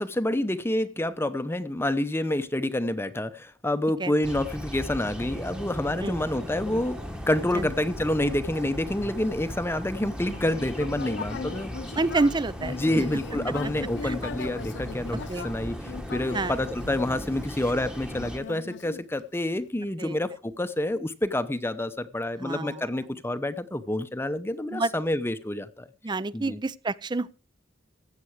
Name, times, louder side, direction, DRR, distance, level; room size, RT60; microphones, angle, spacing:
voice 1, 0.0-7.0 7.3-11.7 12.8-15.2 15.4-15.8 16.1-25.9 26.3-26.6, left 1 dB, 15° left, 0.7 m, -28 dB
sound 1, 4.0-10.9, right 2 dB, 75° right, 2.2 m, -51 dB
sound 2, 4.2-18.4, equal, 5° right, 1.1 m, -37 dB
Human voice, 10.2-17.5 18.1-19.6, left 5 dB, 65° left, 0.5 m, -39 dB
voice 2, 11.9-13.0 13.5-13.6 14.0-14.2 15.3-15.5 16.3-16.5 20.0-20.2 22.4-22.8 24.7-24.9 26.0-27.3, right 3 dB, 25° right, 0.5 m, -28 dB
15.0 x 8.2 x 4.8 m
head